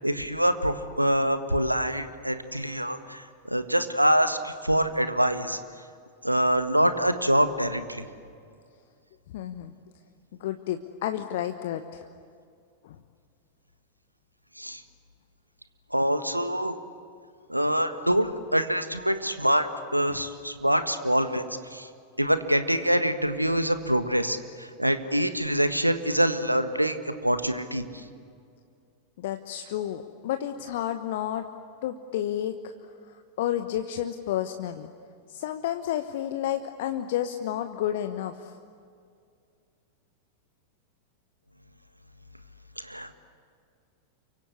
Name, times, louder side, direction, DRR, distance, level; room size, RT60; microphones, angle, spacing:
voice 1, 0.0-5.6 6.2-8.0 14.6-14.8 15.9-16.8 17.5-21.4 21.7-21.9 22.2-27.8 42.8-43.1, equal, 90° right, 10 dB, 1.5 m, -25 dB
voice 2, 9.3-9.7 10.4-12.0 12.8-13.0 20.1-20.2 29.2-31.4 31.8-32.7 33.1-34.9 35.3-38.5, left 11 dB, 55° left, 8 dB, 1.2 m, -31 dB
29.0 x 24.5 x 8.3 m, 2.3 s
figure-of-eight pair, 90°, 0 cm